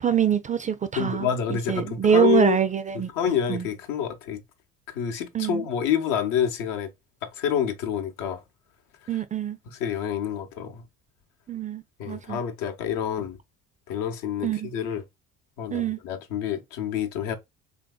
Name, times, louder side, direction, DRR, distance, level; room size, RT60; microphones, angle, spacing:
voice 1, 0.0-3.1 3.5-3.6 5.3-5.6 9.1-9.6 11.5-12.4 14.4-14.7 15.7-16.0, right 8 dB, 25° right, 0.3 m, -24 dB
voice 2, 0.9-2.6 2.9-4.4 4.9-6.9 7.2-8.4 9.1-9.2 9.6-10.8 12.0-13.4 13.9-15.0 15.6-17.3, left 9 dB, 75° left, 0.8 m, -28 dB
3.3 x 2.6 x 2.3 m
supercardioid pair, 75°, 33 cm